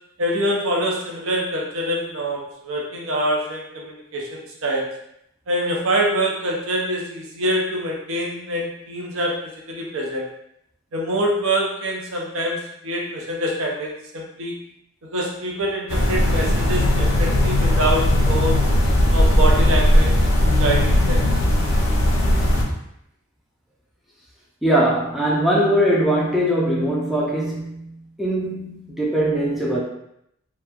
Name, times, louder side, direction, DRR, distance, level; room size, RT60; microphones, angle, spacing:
voice 1, 0.2-4.9 5.5-10.3 10.9-14.5 15.0-18.6 19.1-20.3 20.6-21.2, right 1 dB, 70° right, -1 dB, 0.6 m, -25 dB
sound 1, 15.9-22.6, left 1 dB, 70° left, 0.5 m, -18 dB
voice 2, 24.6-29.8, right 1 dB, ahead, -4 dB, 0.4 m, -21 dB
2.9 x 2.1 x 2.3 m, 0.77 s
head